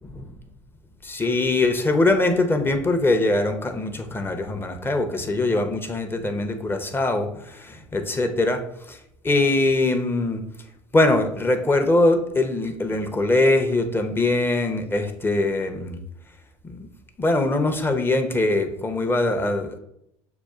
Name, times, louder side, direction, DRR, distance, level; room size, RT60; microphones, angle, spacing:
voice 1, 1.0-8.6 8.9-9.0 9.2-10.4 10.9-16.0 16.6-16.9 17.2-19.8, left 2 dB, 15° left, 6 dB, 0.6 m, -22 dB
6.7 x 2.3 x 2.3 m, 0.76 s
hypercardioid pair, 75°, 15 cm